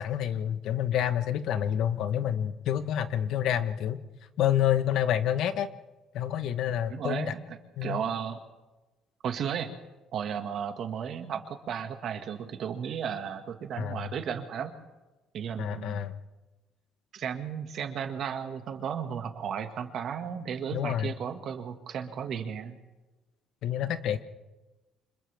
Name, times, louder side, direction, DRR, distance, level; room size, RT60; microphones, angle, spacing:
voice 1, 0.0-4.0 4.4-5.7 6.1-7.3 7.8-8.0 13.8-14.1 15.6-16.2 20.7-21.1 23.6-24.2, left 10 dB, 65° left, 11 dB, 1.1 m, -28 dB
voice 2, 6.9-8.4 9.2-9.7 10.1-14.7 15.3-16.0 17.1-22.8, right 7 dB, 50° right, 6 dB, 1.8 m, -34 dB
29.5 x 26.0 x 3.5 m, 1.1 s
cardioid pair, 165°, 0 cm